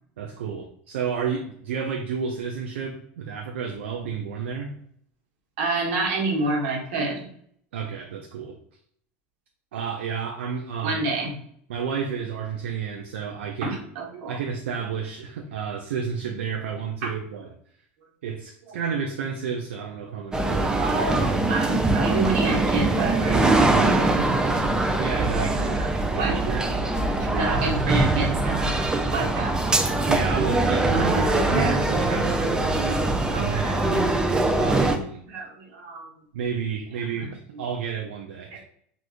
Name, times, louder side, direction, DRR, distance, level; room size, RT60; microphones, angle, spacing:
voice 1, 0.2-4.7 7.7-8.6 9.7-11.0 11.7-13.8 14.3-17.5 18.2-20.9 23.8-24.5 25.0-25.8 27.4-28.0 30.1-33.0 33.3-34.0 34.6-35.2 36.3-38.6, right 6 dB, 85° right, 2 dB, 0.3 m, -31 dB
voice 2, 5.6-7.3 10.8-11.3 13.6-14.4 20.8-23.7 24.4-24.5 24.8-24.9 25.6-26.9 27.2-28.8 29.1-29.8 30.9-32.0 32.9-34.3 35.3-36.1 37.2-37.3 38.5-38.6, right 3 dB, 70° right, -1 dB, 1.0 m, -29 dB
sound 1, 20.3-35.0, right 2 dB, 10° right, 0.4 m, -23 dB
3.5 x 2.4 x 2.5 m, 0.66 s
hypercardioid pair, 100°, 6 cm